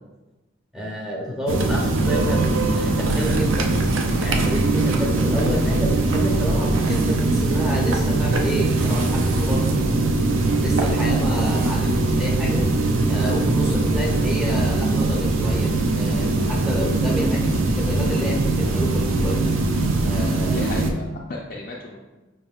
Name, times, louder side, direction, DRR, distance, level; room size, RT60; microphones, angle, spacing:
voice 1, 0.7-3.7 4.2-9.7 10.6-12.6 13.1-15.7 15.9-19.4 20.0-20.7, equal, 5° right, -4 dB, 0.6 m, -29 dB
sound 1, 1.5-20.9, right 2 dB, 85° right, 0.5 m, -21 dB
voice 2, 20.4-22.0, left 3 dB, 50° left, -3 dB, 0.4 m, -35 dB
5.2 x 3.4 x 2.4 m, 1.1 s
head